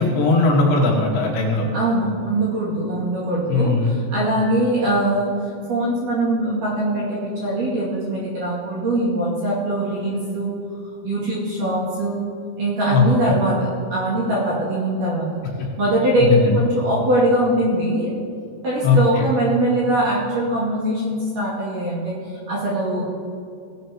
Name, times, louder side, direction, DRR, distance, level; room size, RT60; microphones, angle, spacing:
voice 1, 0.0-1.7 3.5-3.9 12.9-13.4 16.3-16.6 18.8-19.2, left 3 dB, 70° left, -2 dB, 3.4 m, -18 dB
voice 2, 1.7-5.3 5.7-10.5 11.0-12.2 12.6-15.3 15.8-16.3 16.5-18.1 18.6-23.0, right 1 dB, 50° right, -8 dB, 3.1 m, -22 dB
17.5 x 11.0 x 2.8 m, 2.5 s
omnidirectional pair, 5.8 m